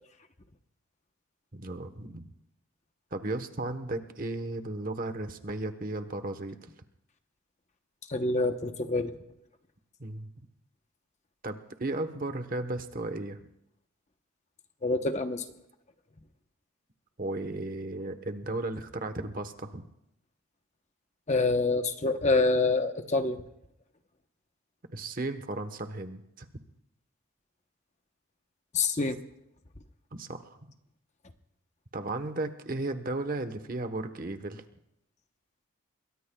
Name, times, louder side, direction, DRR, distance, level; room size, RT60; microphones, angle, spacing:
voice 1, 1.5-2.3 3.1-6.6 10.0-10.3 11.4-13.4 17.2-19.9 24.9-26.5 30.1-30.7 31.9-34.6, right 2 dB, 40° right, 8 dB, 1.1 m, -35 dB
voice 2, 8.1-9.1 14.8-15.4 21.3-23.5 28.7-29.2, left 3 dB, 35° left, 7 dB, 0.9 m, -26 dB
27.5 x 22.0 x 2.3 m, 0.82 s
head